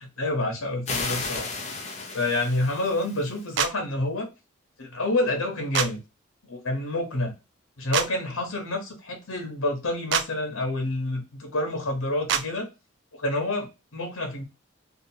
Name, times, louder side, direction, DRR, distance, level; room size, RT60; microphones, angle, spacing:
voice 1, 0.0-1.5 2.1-4.3 4.8-6.0 6.5-7.3 7.8-12.7 13.2-13.7 13.9-14.4, left 2 dB, 85° left, 3 dB, 1.0 m, -28 dB
sound 1, 0.9-3.4, left 3 dB, 35° left, 0.6 m, -34 dB
sound 2, 3.6-3.7 5.7-5.9 7.9-8.1 10.1-10.3 12.3-12.4, right 8 dB, 55° right, 0.3 m, -24 dB
2.8 x 2.4 x 2.7 m, 0.27 s
head